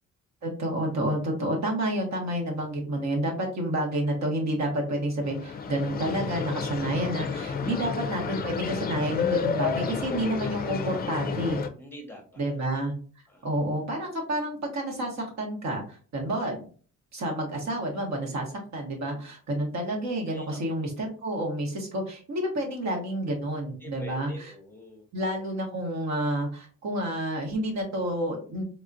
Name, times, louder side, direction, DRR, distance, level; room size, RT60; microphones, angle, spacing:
voice 1, 0.4-11.6 12.4-12.9 13.4-16.7 17.1-18.5 18.7-24.3 25.1-28.6, right 1 dB, 65° right, 1 dB, 1.2 m, -29 dB
sound 1, 5.2-11.7, left 6 dB, 30° left, 0.4 m, -31 dB
voice 2, 11.8-12.6 13.3-13.5 20.3-20.6 23.8-25.1, left 1 dB, 5° left, 0 dB, 0.8 m, -46 dB
3.5 x 2.3 x 2.6 m, 0.41 s
cardioid pair, 90°, 30 cm